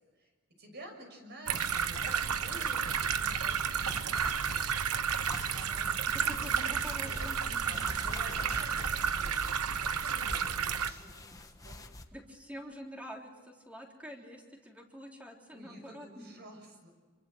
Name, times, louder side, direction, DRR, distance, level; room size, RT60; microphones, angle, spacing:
voice 1, 0.6-7.4 7.7-11.8 15.5-16.9, right 1 dB, 50° right, 4 dB, 6.6 m, -51 dB
sound 1, 1.5-12.0, left 1 dB, 15° left, 1.3 m, -46 dB
sound 2, 1.5-10.9, right 7 dB, 90° right, 1.1 m, -32 dB
voice 2, 6.1-7.9 12.1-16.3, equal, 5° right, 0 dB, 3.4 m, -47 dB
28.0 x 23.5 x 8.0 m, 1.4 s
head